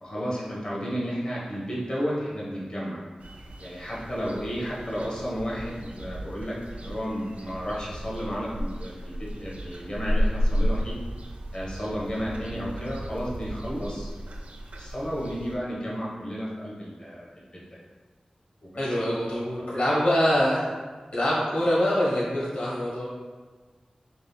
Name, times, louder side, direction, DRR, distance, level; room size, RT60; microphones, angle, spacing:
voice 1, 0.0-3.0 3.6-10.9 11.5-14.1 14.8-17.8 18.6-19.2 19.6-19.7, equal, 40° left, -6 dB, 1.1 m, -33 dB
sound 1, 3.2-15.6, equal, 85° right, 0.4 m, -33 dB
voice 2, 18.8-20.7 21.1-23.1, equal, 60° left, -6 dB, 1.0 m, -24 dB
5.0 x 3.5 x 2.2 m, 1.4 s
wide cardioid pair, 75°, 2 cm